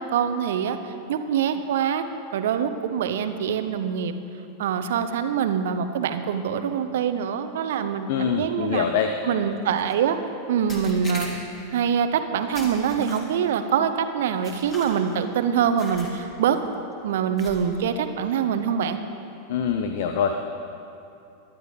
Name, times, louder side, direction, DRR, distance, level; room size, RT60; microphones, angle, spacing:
voice 1, 0.0-2.0 2.3-4.1 4.6-8.9 9.2-10.2 10.5-11.3 11.7-16.6 17.0-19.0, right 8 dB, 55° right, 9 dB, 0.8 m, -24 dB
voice 2, 8.1-9.1 19.5-20.4, left 7 dB, 50° left, 6 dB, 0.7 m, -24 dB
sound 1, 9.7-9.9 10.7-11.7 12.5-13.5 14.4-15.2 15.8-16.2 16.5-16.7 17.4-17.8, left 1 dB, 25° left, 2.9 m, -40 dB
24.0 x 11.5 x 3.2 m, 2.8 s
figure-of-eight pair, 90°, 0 cm